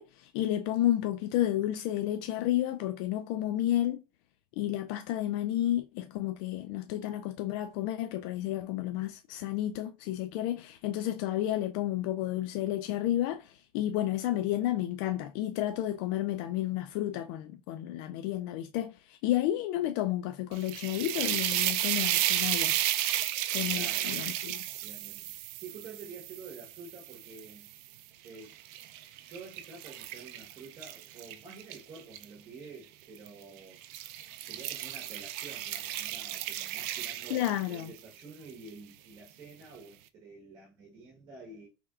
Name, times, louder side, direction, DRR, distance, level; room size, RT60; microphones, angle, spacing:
voice 1, 0.0-4.0 4.6-22.8 23.5-24.5 37.3-37.9, left 13 dB, 60° left, 0.4 m, -31 dB
sound 1, 20.5-27.7 28.3-32.2 33.1-33.4 33.8-38.0, right 13 dB, 60° right, 0.4 m, -33 dB
voice 2, 23.7-24.4 24.8-27.7 28.2-28.5 28.9-33.8 34.4-41.7, right 4 dB, 30° right, 1.3 m, -49 dB
4.3 x 3.4 x 2.3 m
supercardioid pair, 150°, 13 cm